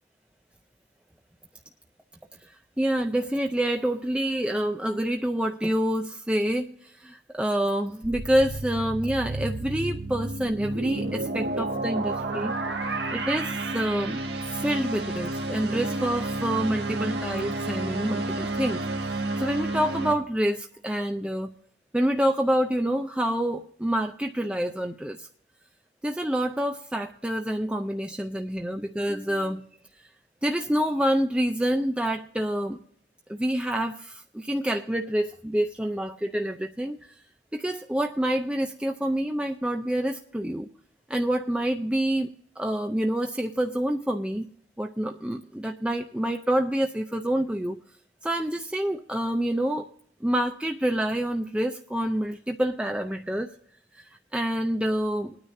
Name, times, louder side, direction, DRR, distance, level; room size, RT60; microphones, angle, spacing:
voice 1, 2.4-12.5 13.1-14.2 14.5-18.8 19.1-21.5 21.9-25.3 26.0-29.6 30.0-30.1 30.4-32.8 33.3-37.2 37.5-40.7 41.1-42.3 42.6-44.5 44.8-47.8 48.2-49.9 50.2-53.5 53.9-54.0 54.3-55.4, right 1 dB, 5° right, 4 dB, 0.4 m, -27 dB
sound 1, 8.0-20.1, right 2 dB, 75° right, 1.5 m, -31 dB
22.0 x 9.6 x 2.6 m, 0.63 s
head